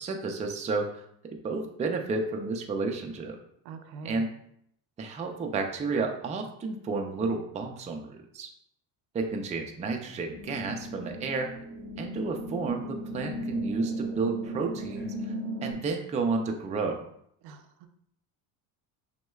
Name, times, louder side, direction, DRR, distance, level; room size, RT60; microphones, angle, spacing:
voice 1, 0.0-3.4 4.0-4.3 5.0-8.5 9.1-11.5 12.0-15.3 15.6-17.0, right 4 dB, 20° right, 3 dB, 0.4 m, -31 dB
voice 2, 3.7-4.3 17.4-17.9, right 4 dB, 75° right, 6 dB, 0.6 m, -43 dB
sound 1, 10.3-15.7, right 1 dB, 30° left, 1.1 m, -36 dB
6.0 x 2.1 x 2.3 m, 0.71 s
cardioid pair, 115°, 40 cm